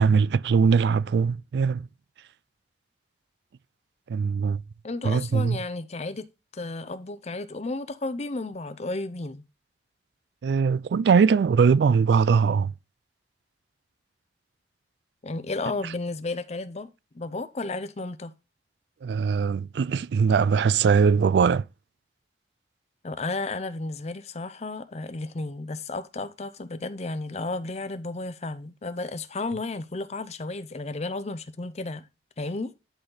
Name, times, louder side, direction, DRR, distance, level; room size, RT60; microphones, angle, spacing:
voice 1, 0.0-1.9 4.1-4.6 5.0-5.6 10.4-12.7 19.0-21.7, right 5 dB, 70° right, 0.3 m, -21 dB
voice 2, 4.8-6.3 6.5-9.4 15.2-16.9 17.1-18.3 23.0-32.1 32.4-32.7, left 2 dB, 40° left, 0.6 m, -33 dB
10.5 x 4.1 x 3.9 m
head